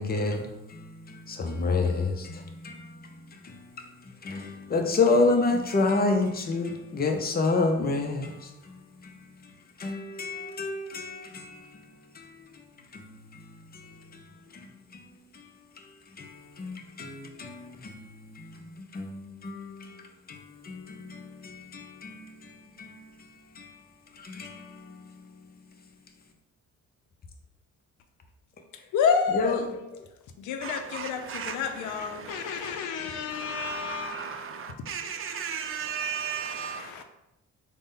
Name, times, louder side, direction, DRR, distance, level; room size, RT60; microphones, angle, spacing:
voice 1, 0.0-9.5 9.8-15.1 15.3-23.8 24.1-25.4 29.3-29.6, left 3 dB, 30° left, 0.6 m, -31 dB
voice 2, 28.9-29.9 30.4-34.3 35.9-37.0, left 6 dB, 85° left, 0.5 m, -30 dB
voice 3, 30.6-37.0, right 7 dB, 45° right, 0.4 m, -36 dB
3.9 x 2.1 x 3.6 m
cardioid pair, 90°, 30 cm